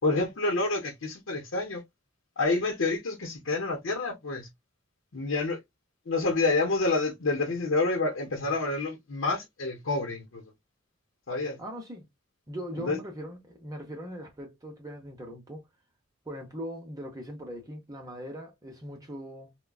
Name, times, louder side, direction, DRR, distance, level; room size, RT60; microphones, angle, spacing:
voice 1, 0.0-1.8 2.4-4.5 5.1-5.6 6.1-10.4 11.3-11.6 12.9-13.0, left 3 dB, 70° left, 0.8 m, -28 dB
voice 2, 11.6-12.1 12.5-15.7 16.3-19.5, equal, 20° right, 0.7 m, -40 dB
3.6 x 2.2 x 2.3 m
head